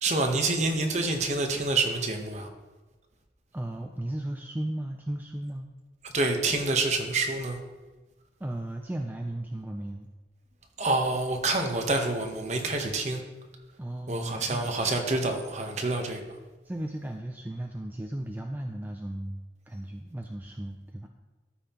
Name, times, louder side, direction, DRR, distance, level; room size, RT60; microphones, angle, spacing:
voice 1, 0.0-2.5 6.0-7.6 10.8-13.2 14.1-16.4, right 2 dB, 40° right, 4 dB, 0.9 m, -27 dB
voice 2, 3.5-5.7 8.4-10.1 13.8-14.7 16.6-21.1, right 1 dB, 10° right, 3 dB, 0.3 m, -35 dB
12.5 x 5.5 x 2.9 m, 1.2 s
head